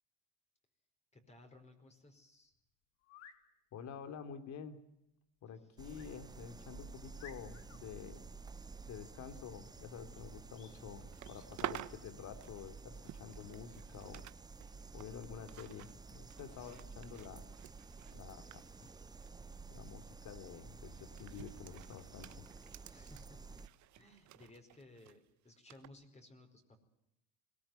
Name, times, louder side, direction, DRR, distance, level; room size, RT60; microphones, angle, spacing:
voice 1, 1.1-2.5 5.5-5.7 10.1-10.2 16.5-16.9 22.9-23.6 23.9-26.8, left 2 dB, 20° left, 5 dB, 4.9 m, -59 dB
sound 1, 3.0-3.4 5.9-6.1 6.7-6.8 7.2-7.8 10.5-10.8 11.2-11.5, left 8 dB, 85° left, 3.3 m, -57 dB
voice 2, 3.7-4.8 5.4-8.3 8.9-14.3 14.9-17.4 18.1-18.5 18.8-18.9 19.7-22.4, left 7 dB, 50° left, 8 dB, 3.4 m, -49 dB
sound 2, 5.8-23.7, right 4 dB, 10° right, 0.8 m, -52 dB
sound 3, 11.0-14.3 14.6-19.6 19.9-20.1 20.9-25.2 25.7-25.9, right 14 dB, 55° right, 1.3 m, -50 dB
22.0 x 18.0 x 9.2 m, 0.86 s
supercardioid pair, 110°, 35 cm